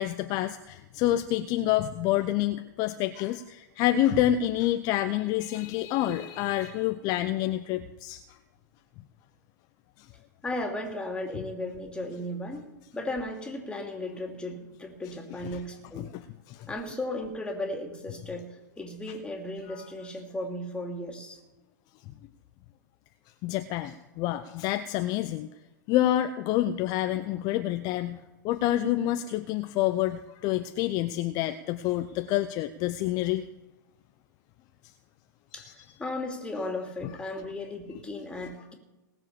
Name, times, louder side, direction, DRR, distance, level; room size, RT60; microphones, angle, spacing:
voice 1, 0.0-8.4 10.0-10.1 15.4-15.6 16.0-16.7 19.7-19.9 23.4-25.5 25.9-33.5 35.5-35.9 37.0-37.1, left 13 dB, 40° left, 10 dB, 0.7 m, -28 dB
voice 2, 10.4-16.1 16.7-18.5 18.8-21.4 24.3-24.4 35.5-35.7 36.0-38.7, left 1 dB, 10° left, 2 dB, 3.0 m, -35 dB
19.0 x 7.3 x 6.9 m, 1.1 s
hypercardioid pair, 110°, 11 cm